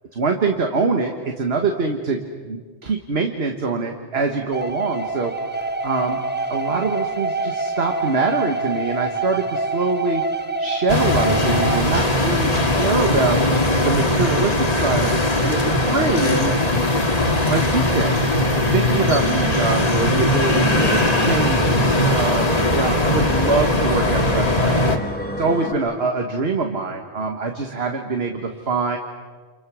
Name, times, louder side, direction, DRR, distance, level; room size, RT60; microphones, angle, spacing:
voice 1, 0.2-2.2 2.5-5.3 5.8-6.2 6.5-10.2 10.6-13.4 13.9-16.6 17.5-18.1 18.7-21.8 22.1-22.5 22.7-25.0 25.4-29.0, right 4 dB, 60° right, 4 dB, 1.8 m, -24 dB
sound 1, 4.5-11.8, right 3 dB, 10° right, 0.9 m, -26 dB
sound 2, 10.9-25.0, left 1 dB, 35° left, 2.1 m, -19 dB
sound 3, 20.3-25.7, left 1 dB, 10° left, 1.8 m, -30 dB
30.0 x 28.0 x 6.3 m, 1.5 s
omnidirectional pair, 1.2 m